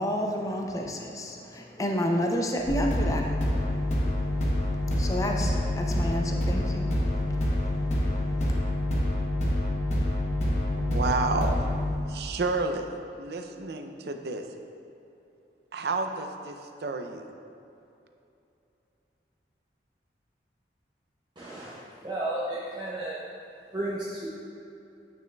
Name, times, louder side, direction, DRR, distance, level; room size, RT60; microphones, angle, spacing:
voice 1, 0.0-4.0 4.3-8.6, equal, 20° left, 2 dB, 0.5 m, -32 dB
sound 1, 2.7-11.9, left 1 dB, 40° left, 0.9 m, -27 dB
voice 2, 10.8-11.7 12.1-14.5 15.7-17.3, right 3 dB, 65° right, 6 dB, 0.5 m, -31 dB
voice 3, 21.4-23.2 23.7-24.3, right 1 dB, 25° right, -7 dB, 0.6 m, -33 dB
8.9 x 6.1 x 2.3 m, 2.8 s
head